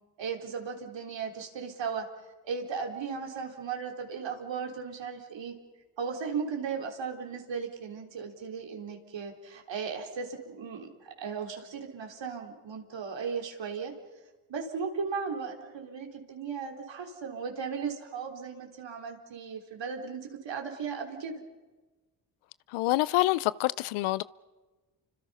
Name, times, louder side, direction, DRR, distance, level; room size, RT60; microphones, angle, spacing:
voice 1, 0.2-2.1 2.4-5.5 6.0-13.9 14.5-21.4, right 5 dB, 65° right, 4.0 m, -36 dB
voice 2, 22.7-24.2, left 18 dB, 85° left, 0.7 m, -26 dB
30.0 x 25.5 x 5.6 m
supercardioid pair, 50°, 48 cm